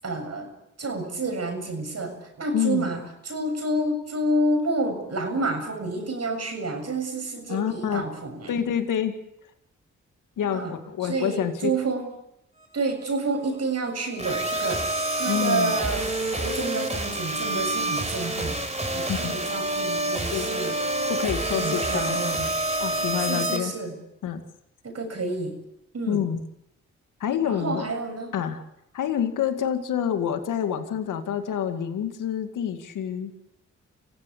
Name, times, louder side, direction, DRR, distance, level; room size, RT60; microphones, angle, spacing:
voice 1, 0.0-0.5 0.8-8.5 10.4-10.8 11.0-12.1 12.7-14.9 15.1-16.1 16.4-20.8 21.6-22.5 23.2-23.9 24.8-25.6 25.9-26.3 27.4-28.3, right 2 dB, 55° right, 5 dB, 7.2 m, -29 dB
voice 2, 2.5-2.9 7.5-8.0 8.5-9.1 10.4-11.7 15.2-15.7 19.1-19.3 20.3-20.5 21.1-22.2 22.8-23.7 24.2-24.4 26.1-26.4 27.2-27.9 28.3-28.6 28.9-33.3, left 9 dB, 85° left, 7 dB, 2.3 m, -27 dB
sound 1, 14.2-23.6, right 2 dB, 20° right, 5.0 m, -27 dB
26.5 x 16.0 x 8.6 m, 0.82 s
supercardioid pair, 45°, 30 cm